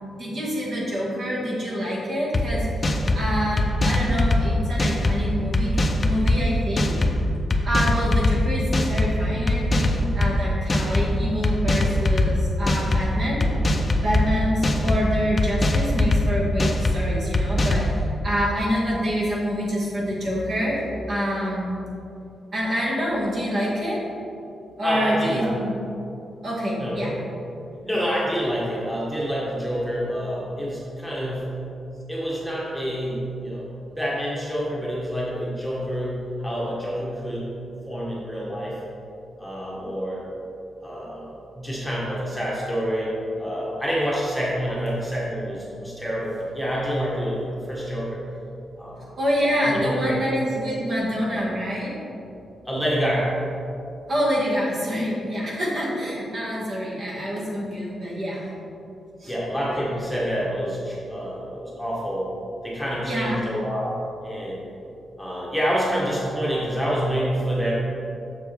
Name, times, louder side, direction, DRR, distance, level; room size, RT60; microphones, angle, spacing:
voice 1, 0.1-7.0 7.6-13.5 14.0-20.8 21.1-21.7 22.5-24.0 24.8-25.8 26.4-27.2 49.2-52.0 54.1-58.4 59.2-59.3 63.0-63.4, equal, 50° right, -5 dB, 1.7 m, -26 dB
sound 1, 2.3-2.4 2.8-3.2 3.6-4.4 4.8-5.2 5.5-6.4 6.8-7.1 7.5-8.3 8.7-9.1 9.5-10.3 10.7-11.1 11.4-12.3 12.7-13.0 13.4-14.2 14.6-15.0 15.4-16.2 16.6-17.0 17.3-17.9, left 2 dB, 30° left, 0.5 m, -21 dB
voice 2, 24.8-25.5 26.8-27.3 27.8-31.5 32.1-37.4 37.9-38.8 39.4-40.2 40.8-48.2 48.8-49.1 49.6-50.2 52.6-53.3 56.0-56.1 59.3-62.3 62.6-64.6 65.2-67.8, equal, ahead, -7 dB, 1.3 m, -27 dB
6.9 x 6.6 x 3.4 m, 2.7 s
wide cardioid pair, 135°, 0 cm